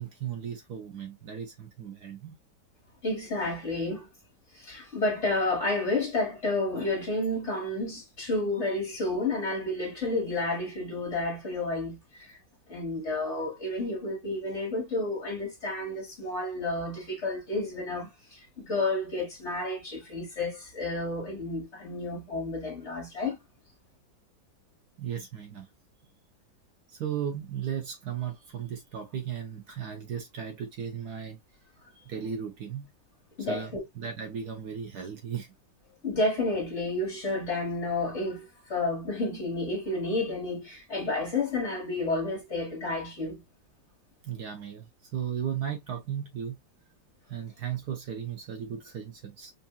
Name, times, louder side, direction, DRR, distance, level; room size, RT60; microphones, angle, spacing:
voice 1, 0.0-2.4 25.0-25.7 26.9-31.4 31.9-32.9 33.4-35.5 44.2-46.6 47.3-49.5, right 8 dB, 65° right, 1.3 m, -36 dB
voice 2, 3.0-4.1 4.5-12.4 12.7-23.4 33.4-33.8 36.0-43.4, left 2 dB, 40° left, 1.8 m, -31 dB
5.5 x 2.6 x 2.3 m
omnidirectional pair, 2.1 m